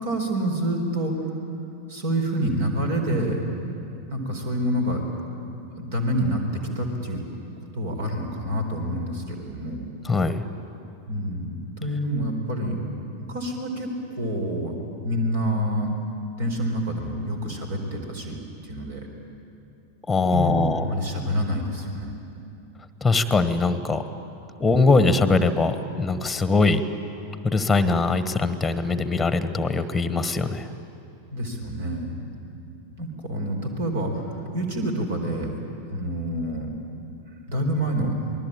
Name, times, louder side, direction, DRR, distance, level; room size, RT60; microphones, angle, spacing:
voice 1, 0.0-1.1 1.9-3.4 4.1-5.0 5.8-7.2 7.8-9.9 11.1-12.8 13.3-13.9 14.2-14.7 15.0-15.9 16.4-19.1 20.3-22.1 31.3-32.2 33.0-35.5 35.9-36.7 37.5-38.2, equal, 55° right, 3 dB, 4.2 m, -27 dB
voice 2, 10.0-10.4 20.1-20.9 23.0-24.0 24.6-26.8 27.4-30.7, left 3 dB, 10° left, 12 dB, 1.4 m, -21 dB
27.5 x 20.0 x 8.7 m, 2.7 s
figure-of-eight pair, 90°, 0 cm